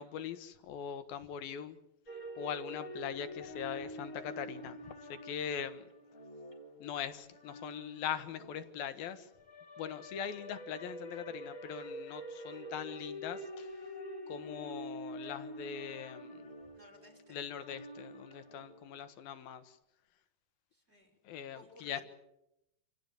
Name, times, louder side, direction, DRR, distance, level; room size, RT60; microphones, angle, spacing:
voice 1, 0.0-1.8 2.4-5.9 6.8-9.3 9.8-13.7 14.3-16.4 17.3-19.8 21.2-22.0, left 8 dB, 75° left, 10 dB, 3.2 m, -41 dB
sound 1, 2.1-19.1, equal, 20° left, 3.5 m, -47 dB
voice 2, 16.7-17.4 20.7-22.0, left 1 dB, 15° right, 4 dB, 5.4 m, -59 dB
28.0 x 17.5 x 9.4 m, 0.84 s
omnidirectional pair, 4.3 m